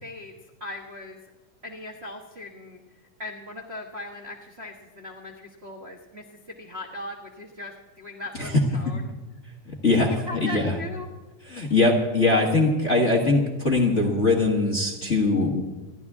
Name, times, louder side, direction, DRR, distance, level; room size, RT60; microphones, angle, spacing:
voice 1, 0.0-0.3 0.6-1.2 1.6-2.8 3.2-6.2 6.6-9.1 9.9-11.1, left 1 dB, 40° right, 0 dB, 0.9 m, -38 dB
voice 2, 9.8-10.7 11.5-15.6, left 2 dB, 35° left, -1 dB, 1.2 m, -21 dB
28.5 x 11.5 x 3.6 m, 1.2 s
omnidirectional pair, 3.6 m